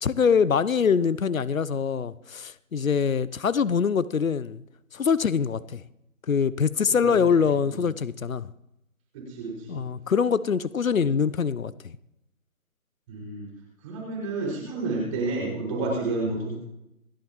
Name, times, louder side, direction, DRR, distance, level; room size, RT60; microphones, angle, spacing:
voice 1, 0.0-4.6 4.9-5.8 6.3-8.5 9.7-11.7, left 6 dB, 75° left, 19 dB, 0.8 m, -24 dB
voice 2, 6.9-7.4 7.7-7.8 9.1-9.8 13.1-13.5 13.8-16.6, right 3 dB, 25° right, -3 dB, 5.6 m, -30 dB
28.5 x 10.0 x 3.1 m, 0.85 s
figure-of-eight pair, 150°, 42 cm